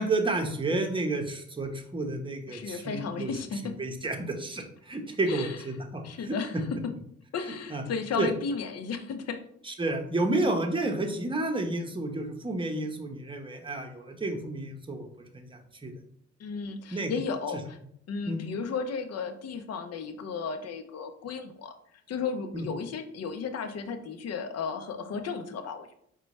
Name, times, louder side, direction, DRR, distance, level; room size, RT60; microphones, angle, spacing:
voice 1, 0.0-3.3 3.8-6.3 7.7-7.8 8.2-8.3 9.7-15.1 15.3-15.9 16.9-17.2 18.3-18.4 22.5-22.7, right 2 dB, 15° right, 3 dB, 0.8 m, -31 dB
voice 2, 2.5-3.8 5.3-5.6 6.0-6.9 7.3-9.4 16.4-17.8 18.1-21.7 22.1-25.9, left 5 dB, 60° left, 8 dB, 0.6 m, -34 dB
4.4 x 2.2 x 4.0 m, 0.69 s
cardioid pair, 65°, 30 cm